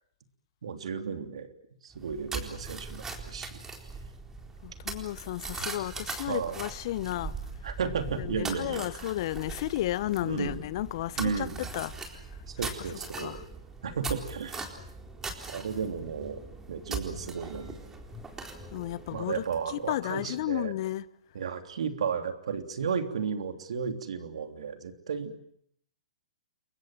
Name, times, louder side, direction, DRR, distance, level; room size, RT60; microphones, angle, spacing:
voice 1, 0.6-1.5 1.8-3.6 5.6-5.7 6.3-6.6 7.6-9.1 10.2-10.6 11.2-11.6 12.5-13.4 13.8-14.6 15.5-16.4 16.7-17.8 19.1-20.7 21.3-25.4, right 6 dB, 70° right, 3.2 m, -34 dB
sound 1, 1.9-19.9, right 4 dB, 15° right, 4.1 m, -40 dB
sound 2, 4.3-4.9 5.3-5.9 6.2-6.9 7.2-7.9 8.1-8.8 9.1-9.8 10.0-10.7 11.0-11.7 11.9-12.6 12.9-13.5 13.8-14.5 14.8-15.4 15.7-16.4 16.7-16.8 17.2-17.8 18.1-18.3 18.6-19.1, left 7 dB, 15° left, 2.6 m, -53 dB
voice 2, 4.6-7.4 8.1-12.4 13.2-13.4 18.7-21.1, left 15 dB, 50° left, 1.0 m, -33 dB
29.5 x 23.0 x 7.7 m
hypercardioid pair, 120°, 3 cm